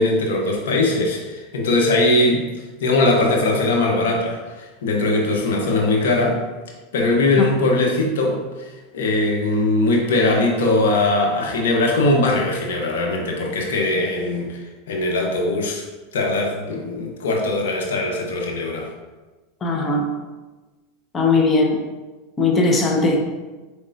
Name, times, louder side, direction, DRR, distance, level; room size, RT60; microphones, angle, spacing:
voice 1, 0.0-2.4 2.8-6.4 6.9-8.4 8.7-14.6 14.9-15.8 16.1-18.9, left 2 dB, 80° left, 0 dB, 0.9 m, -20 dB
voice 2, 19.6-20.1 21.1-21.8 22.4-23.3, left 3 dB, 25° left, 1 dB, 0.8 m, -19 dB
4.2 x 3.4 x 2.6 m, 1.2 s
hypercardioid pair, 105°, 0 cm